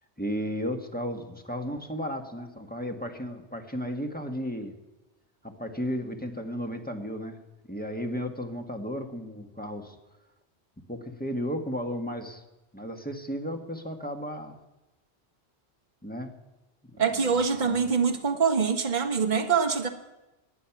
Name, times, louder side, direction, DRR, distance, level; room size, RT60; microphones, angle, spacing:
voice 1, 0.2-4.7 5.4-7.4 7.7-10.0 10.9-12.4 12.7-14.6 16.0-16.3 16.9-17.8, equal, 10° left, 3 dB, 1.3 m, -34 dB
voice 2, 17.0-19.9, right 6 dB, 45° right, 5 dB, 1.3 m, -24 dB
18.5 x 10.5 x 5.9 m, 1.0 s
omnidirectional pair, 1.1 m